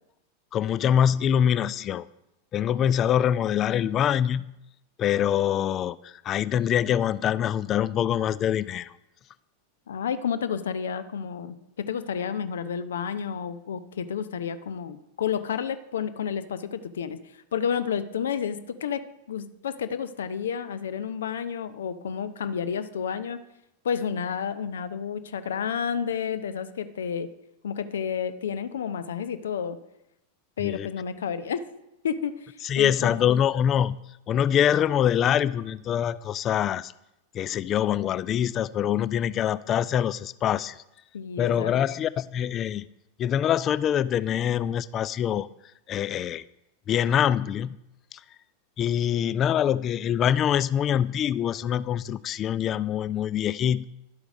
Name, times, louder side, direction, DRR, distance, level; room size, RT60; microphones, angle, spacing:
voice 1, 0.5-2.1 2.5-4.5 5.0-8.9 30.6-30.9 32.6-34.0 34.3-36.9 37.3-40.8 41.4-42.9 43.2-45.5 45.9-46.5 46.9-47.8 48.1-48.2 48.8-53.8, left 9 dB, 30° left, 19 dB, 0.4 m, -24 dB
voice 2, 9.9-17.2 17.5-23.4 23.8-27.3 27.6-29.8 30.6-31.6 32.0-33.3 41.1-41.8, left 7 dB, 65° left, 13 dB, 0.7 m, -31 dB
11.5 x 8.0 x 5.1 m, 0.88 s
figure-of-eight pair, 90°, 0 cm